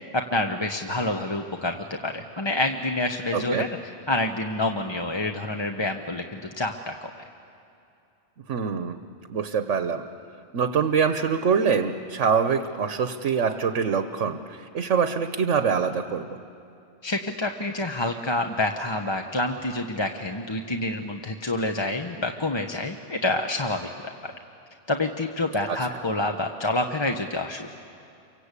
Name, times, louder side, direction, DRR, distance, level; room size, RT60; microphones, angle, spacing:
voice 1, 0.3-3.7 4.1-7.1 17.0-23.9 24.2-24.3 24.9-27.7, left 2 dB, 25° left, 4 dB, 0.9 m, -27 dB
voice 2, 3.3-3.6 8.5-9.0 9.3-10.0 10.5-16.3 25.7-25.8, right 6 dB, 85° right, 8 dB, 1.3 m, -24 dB
29.0 x 24.5 x 8.3 m, 2.6 s
omnidirectional pair, 1.2 m